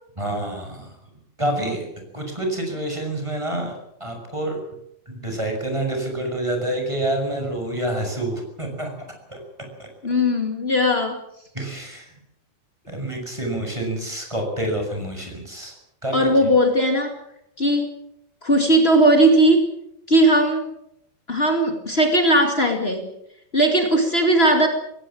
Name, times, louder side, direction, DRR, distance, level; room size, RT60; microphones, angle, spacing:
voice 1, 0.2-1.0 1.4-1.9 2.1-4.6 5.0-8.9 9.3-9.4 9.8-10.1 11.5-12.1 12.9-15.7 16.0-16.5, right 1 dB, 5° right, 3 dB, 6.4 m, -28 dB
voice 2, 10.0-11.2 16.1-17.1 17.6-18.0 18.4-19.7 20.1-20.6 21.3-23.1 23.5-24.7, right 1 dB, 55° left, 4 dB, 0.6 m, -18 dB
21.5 x 18.0 x 8.7 m, 0.77 s
omnidirectional pair, 5.6 m